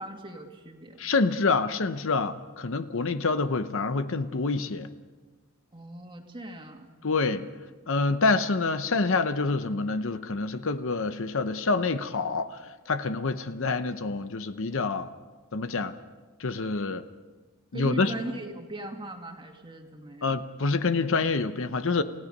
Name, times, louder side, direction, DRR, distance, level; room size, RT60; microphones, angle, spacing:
voice 1, 0.0-1.0 5.7-6.9 17.7-20.4, right 1 dB, 25° right, 3 dB, 2.1 m, -39 dB
voice 2, 1.0-4.9 7.0-7.4 7.9-15.1 15.5-15.9 16.4-17.0 17.7-18.1 20.2-22.0, left 3 dB, 65° left, 11 dB, 0.9 m, -27 dB
29.5 x 16.5 x 5.4 m, 1.3 s
head